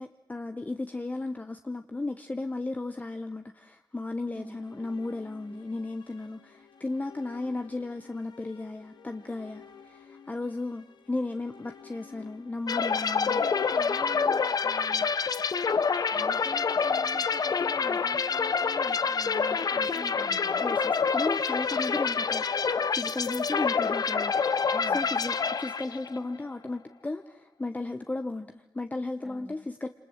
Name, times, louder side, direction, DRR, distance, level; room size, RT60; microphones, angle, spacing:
voice 1, 0.0-13.4 20.6-29.9, left 2 dB, 20° left, 7 dB, 1.0 m, -35 dB
sound 1, 4.2-14.4, left 7 dB, 90° left, 2.2 m, -53 dB
sound 2, 12.7-26.2, left 5 dB, 60° left, 1.0 m, -27 dB
voice 2, 13.2-15.1 16.1-20.7 24.7-25.0 29.2-29.6, equal, 5° right, 6 dB, 2.7 m, -45 dB
27.5 x 26.5 x 8.0 m, 0.91 s
wide cardioid pair, 110°, 7 cm